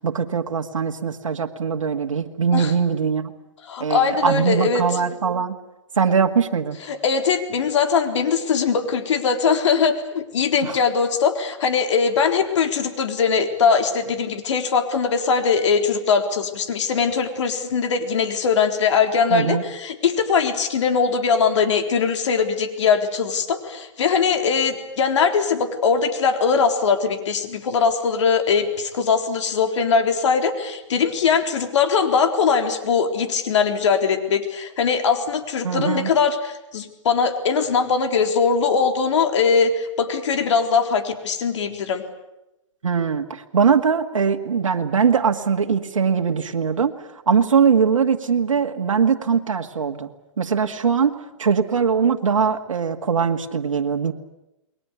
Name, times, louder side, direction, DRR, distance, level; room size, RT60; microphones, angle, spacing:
voice 1, 0.0-3.3 3.8-5.6 6.0-6.8 10.6-10.8 19.3-19.6 35.6-36.1 42.8-50.1 50.4-54.1, right 6 dB, 80° right, 4 dB, 2.1 m, -21 dB
voice 2, 3.7-4.8 6.9-42.0, left 5 dB, 65° left, 5 dB, 3.9 m, -21 dB
29.0 x 21.5 x 8.3 m, 0.94 s
hypercardioid pair, 140°, 16 cm